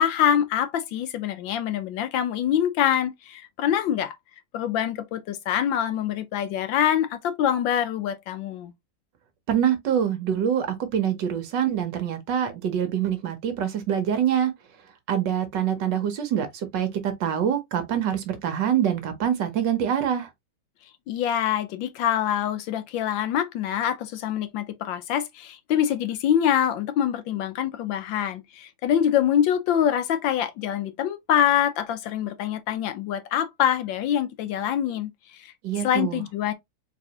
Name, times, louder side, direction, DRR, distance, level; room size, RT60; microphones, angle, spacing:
voice 1, 0.0-4.2 4.5-8.7 21.1-35.5 35.8-36.5, left 10 dB, 75° left, 1.3 m, -25 dB
voice 2, 9.5-14.5 15.1-20.3 35.6-36.2, right 9 dB, 65° right, 1.4 m, -25 dB
4.0 x 3.5 x 2.8 m
omnidirectional pair, 2.2 m